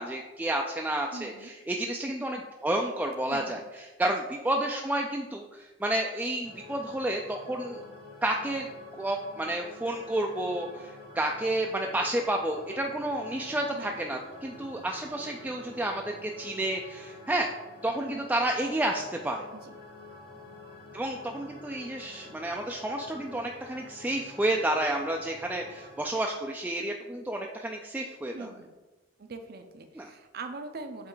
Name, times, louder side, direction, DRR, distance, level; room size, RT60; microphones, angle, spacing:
voice 1, 0.0-3.6 4.0-7.8 8.2-8.7 9.0-17.5 17.8-19.5 20.9-28.5 30.0-30.1, right 1 dB, 10° right, 1 dB, 0.3 m, -30 dB
voice 2, 1.1-1.5 3.3-3.6 13.7-14.1 19.6-19.8 28.3-28.7 29.2-31.1, right 3 dB, 55° right, 7 dB, 0.5 m, -42 dB
sound 1, 6.4-26.0, left 2 dB, 55° left, 1.6 m, -48 dB
7.8 x 3.2 x 3.8 m, 1.1 s
head